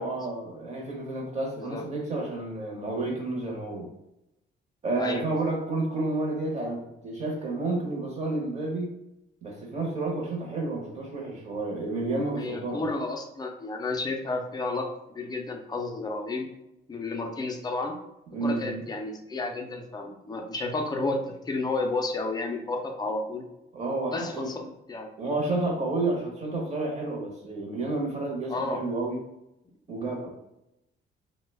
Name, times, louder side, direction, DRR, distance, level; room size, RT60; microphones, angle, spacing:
voice 1, 0.0-3.9 4.8-8.9 9.4-12.8 18.3-18.8 23.7-24.5 25.2-29.2 29.9-30.3, right 2 dB, 35° right, 0 dB, 0.7 m, -30 dB
voice 2, 12.4-14.9 15.1-16.5 16.9-17.9 18.4-21.2 21.5-23.4 24.1-25.1 28.5-28.8, left 3 dB, 20° left, 2 dB, 0.4 m, -31 dB
3.0 x 2.1 x 3.3 m, 0.86 s
cardioid pair, 150°, 20 cm